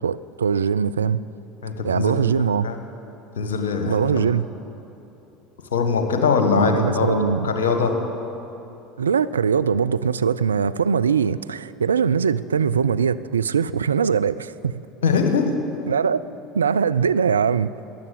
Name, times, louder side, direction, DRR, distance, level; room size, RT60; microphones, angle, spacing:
voice 1, 0.0-1.2 1.8-2.7 3.9-4.4 6.5-7.8 9.0-14.7 15.9-16.2 16.5-17.7, right 6 dB, 80° right, 14 dB, 0.3 m, -21 dB
voice 2, 1.6-2.8 3.4-4.3 5.7-7.2 7.4-7.9 15.0-15.5, left 5 dB, 70° left, 5 dB, 1.5 m, -22 dB
14.0 x 10.0 x 8.4 m, 3.0 s
figure-of-eight pair, 70°, 0 cm